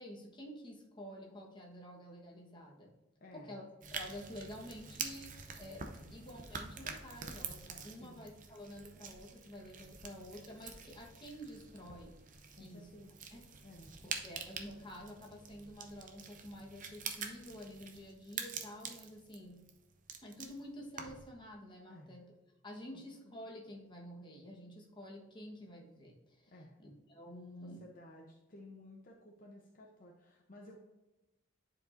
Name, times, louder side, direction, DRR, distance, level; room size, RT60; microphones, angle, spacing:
voice 1, 0.0-2.9 3.3-3.6 3.9-12.2 12.6-12.9 13.3-13.4 14.0-19.6 20.2-22.2 22.6-26.5 26.8-27.8, equal, 25° left, -2 dB, 1.3 m, -50 dB
voice 2, 3.2-3.6 5.9-6.2 8.0-8.3 12.6-13.1 13.6-14.0 21.9-22.2 22.9-23.3 26.5-26.8 27.6-30.8, left 1 dB, 45° left, -1 dB, 0.8 m, -55 dB
sound 1, 3.8-21.3, right 6 dB, 45° right, 0.7 m, -47 dB
10.5 x 4.6 x 2.6 m, 1.0 s
head